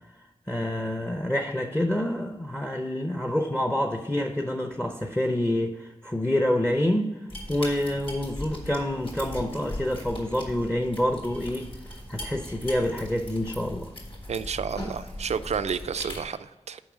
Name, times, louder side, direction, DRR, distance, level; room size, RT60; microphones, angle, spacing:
voice 1, 0.5-11.7 12.1-13.9, left 1 dB, 10° left, 5 dB, 0.6 m, -27 dB
sound 1, 7.3-16.2, left 1 dB, 50° left, 3.0 m, -39 dB
voice 2, 14.3-16.8, right 6 dB, 65° right, 13 dB, 0.4 m, -31 dB
7.1 x 5.5 x 6.2 m, 1.1 s
wide cardioid pair, 80°, 12 cm